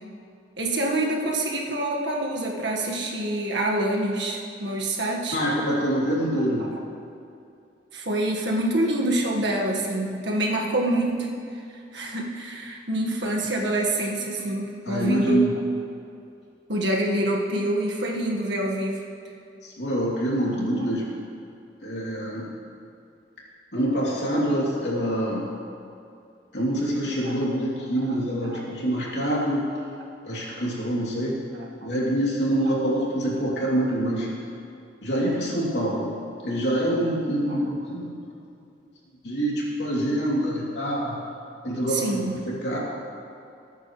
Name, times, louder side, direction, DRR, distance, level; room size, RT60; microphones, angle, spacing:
voice 1, 0.6-5.4 7.9-11.3 11.9-15.4 16.7-19.1 27.2-27.3 28.5-28.6 31.8-31.9 32.6-32.7 37.5-37.6 41.9-42.4, right 1 dB, 75° right, -1 dB, 1.7 m, -26 dB
voice 2, 5.3-6.6 14.8-15.5 19.6-21.2 21.8-22.5 23.7-25.4 26.5-29.6 30.2-31.3 31.8-34.3 35.0-36.1 36.4-38.1 39.2-41.2 41.6-42.8, right 1 dB, 70° left, -5 dB, 3.0 m, -25 dB
19.5 x 9.2 x 3.3 m, 2.5 s
head